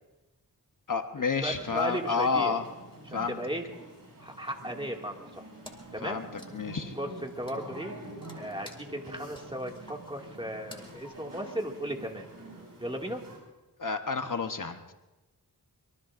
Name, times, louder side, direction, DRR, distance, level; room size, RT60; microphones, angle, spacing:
voice 1, 0.9-2.6 3.1-3.4 6.0-6.3 6.5-7.0 13.8-14.9, left 5 dB, 50° left, 6 dB, 1.0 m, -30 dB
voice 2, 1.4-2.5 3.1-3.6 4.2-5.4 5.9-6.2 6.9-7.9 8.4-12.3 12.8-13.2, right 1 dB, 15° right, 1 dB, 2.1 m, -36 dB
sound 1, 1.5-13.4, right 1 dB, 55° right, 6.0 m, -47 dB
Wood, 5.6-6.0 6.3-11.9, left 1 dB, 10° left, 2.3 m, -52 dB
24.5 x 23.0 x 2.6 m, 1.1 s
wide cardioid pair, 60°, 41 cm